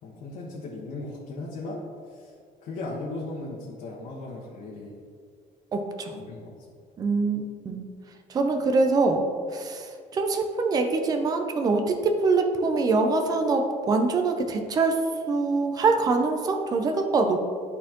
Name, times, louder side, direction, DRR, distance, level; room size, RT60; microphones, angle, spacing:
voice 1, 0.0-2.3 2.6-5.0 6.1-6.5, left 2 dB, 65° left, -5 dB, 1.3 m, -37 dB
voice 2, 5.7-6.2 7.0-7.8 8.3-9.2 9.5-15.0 15.3-17.4, right 3 dB, 25° right, 4 dB, 0.5 m, -24 dB
12.5 x 4.2 x 3.0 m, 2.1 s
cardioid pair, 160°, 15 cm